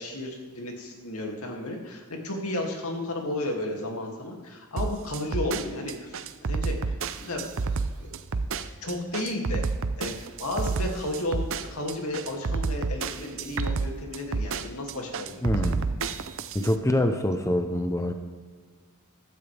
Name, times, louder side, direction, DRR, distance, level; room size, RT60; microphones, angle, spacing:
voice 1, 0.0-6.8 7.2-7.4 8.0-8.1 8.8-9.6 10.0-15.7, left 1 dB, 80° left, 1 dB, 2.5 m, -33 dB
sound 1, 4.8-16.7, right 4 dB, 65° right, 0.6 m, -29 dB
voice 2, 15.4-15.9 16.5-18.1, left 1 dB, 15° left, 6 dB, 0.7 m, -25 dB
15.5 x 13.0 x 3.5 m, 1.5 s
head